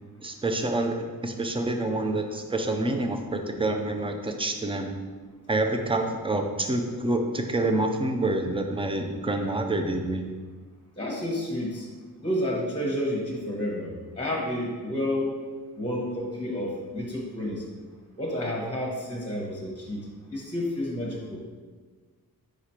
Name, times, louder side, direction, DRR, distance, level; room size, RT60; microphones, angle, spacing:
voice 1, 0.2-4.9 5.5-10.2, right 2 dB, 15° right, 4 dB, 0.5 m, -27 dB
voice 2, 11.0-11.9 12.2-15.3 15.8-17.6 18.2-20.0 20.3-21.4, left 1 dB, 15° left, -3 dB, 1.0 m, -30 dB
5.0 x 4.8 x 4.4 m, 1.5 s
wide cardioid pair, 145°, 36 cm